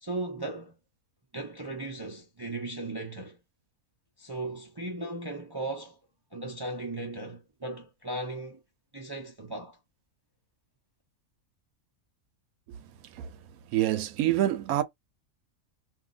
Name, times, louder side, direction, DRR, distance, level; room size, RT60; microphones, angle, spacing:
voice 1, 0.0-0.8 1.3-3.4 4.2-6.0 6.3-8.6 8.9-9.8, right 2 dB, 40° right, 0.3 m, -37 dB
voice 2, 13.7-14.8, right 13 dB, 80° right, 1.0 m, -26 dB
2.5 x 2.3 x 3.8 m
omnidirectional pair, 1.5 m